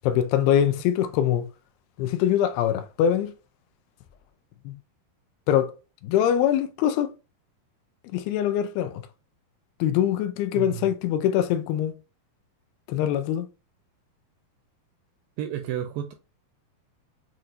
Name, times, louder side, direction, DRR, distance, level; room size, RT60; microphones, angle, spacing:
voice 1, 0.0-1.5 2.0-3.3 4.7-4.8 5.5-5.7 6.0-7.1 8.1-8.9 9.8-11.9 12.9-13.5, left 10 dB, 80° left, 2.4 m, -23 dB
voice 2, 10.6-10.9 15.4-16.1, right 10 dB, 80° right, 2.0 m, -31 dB
7.6 x 2.6 x 2.7 m
omnidirectional pair, 4.4 m